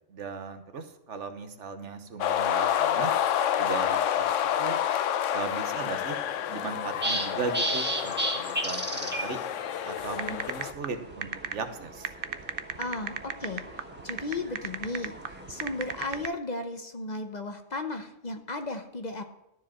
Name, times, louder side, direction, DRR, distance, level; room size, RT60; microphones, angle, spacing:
voice 1, 0.1-3.1 3.6-4.8 5.3-6.2 6.5-9.4 9.8-12.1, right 4 dB, 75° right, 8 dB, 1.3 m, -37 dB
sound 1, 2.2-10.7, left 10 dB, 85° left, 1.0 m, -29 dB
sound 2, 5.7-16.2, right 1 dB, 10° right, 1.4 m, -36 dB
sound 3, 10.0-16.3, right 8 dB, 55° right, 0.8 m, -35 dB
voice 2, 12.8-13.6 14.0-15.2 15.5-19.2, left 2 dB, 40° left, 6 dB, 0.9 m, -35 dB
13.5 x 4.9 x 7.3 m, 0.89 s
omnidirectional pair, 1.3 m